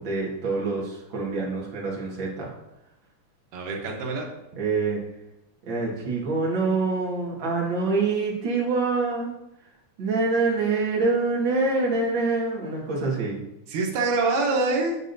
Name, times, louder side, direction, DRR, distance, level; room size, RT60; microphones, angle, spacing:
voice 1, 0.0-2.5 4.6-5.1 5.7-9.3 10.0-13.4, right 3 dB, 45° right, -4 dB, 2.2 m, -25 dB
voice 2, 3.5-4.3 13.7-15.0, right 3 dB, 85° right, 1 dB, 2.7 m, -25 dB
8.7 x 7.3 x 2.7 m, 0.90 s
omnidirectional pair, 3.5 m